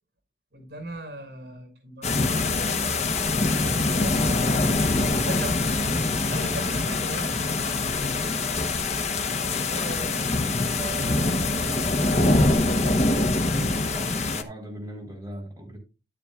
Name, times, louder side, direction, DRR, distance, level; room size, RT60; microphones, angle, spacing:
voice 1, 0.5-4.2 5.1-5.7 6.3-8.2 9.3-10.2, right 1 dB, 65° right, 6.3 m, -39 dB
sound 1, 2.0-14.4, left 2 dB, 40° left, 1.0 m, -24 dB
sound 2, 3.1-5.4 6.8-7.8 8.8-10.1 10.8-13.1, right 8 dB, ahead, 1.8 m, -47 dB
voice 2, 4.7-5.1 11.0-11.3 11.5-15.8, right 1 dB, 20° right, 4.1 m, -40 dB
11.5 x 10.0 x 2.4 m
head